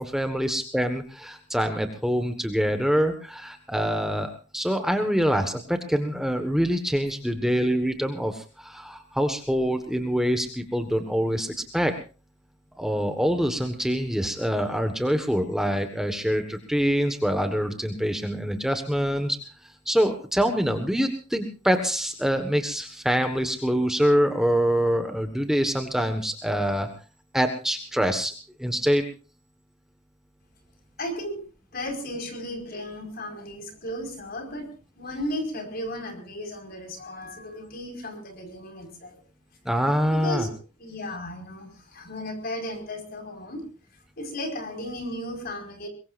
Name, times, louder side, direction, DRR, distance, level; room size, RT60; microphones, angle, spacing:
voice 1, 0.0-11.9 12.8-19.4 19.8-26.9 27.3-28.3 28.6-29.0 39.6-40.5, equal, ahead, 6 dB, 1.4 m, -25 dB
voice 2, 31.0-31.4 31.7-34.7 35.0-39.2 40.1-40.5 40.8-43.6 44.2-45.9, left 1 dB, 50° left, 4 dB, 4.9 m, -35 dB
23.0 x 22.0 x 2.6 m, 0.34 s
head